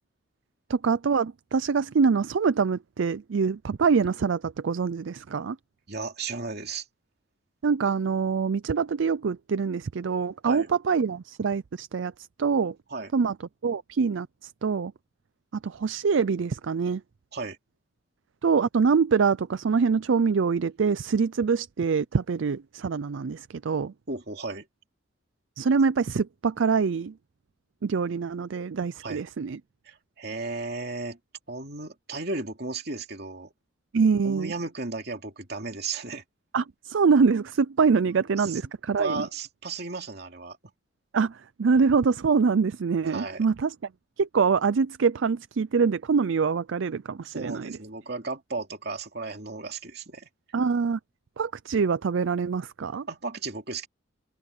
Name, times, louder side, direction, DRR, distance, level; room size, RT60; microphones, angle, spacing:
voice 1, 0.7-5.6 7.6-12.1 12.4-12.7 13.1-13.3 13.6-14.9 15.6-17.0 18.4-23.9 25.6-27.1 27.8-29.6 33.9-34.5 36.5-39.3 41.1-43.7 44.2-47.8 50.5-51.0 51.4-53.1, right 5 dB, 65° right, 0.4 m, -24 dB
voice 2, 5.9-6.8 10.4-10.7 12.9-13.1 17.3-17.6 24.1-24.7 29.0-29.2 29.9-31.2 31.5-33.5 34.2-36.2 38.4-38.7 39.0-40.6 43.1-43.4 47.3-50.3 53.1-53.9, right 3 dB, 50° right, 2.8 m, -34 dB
head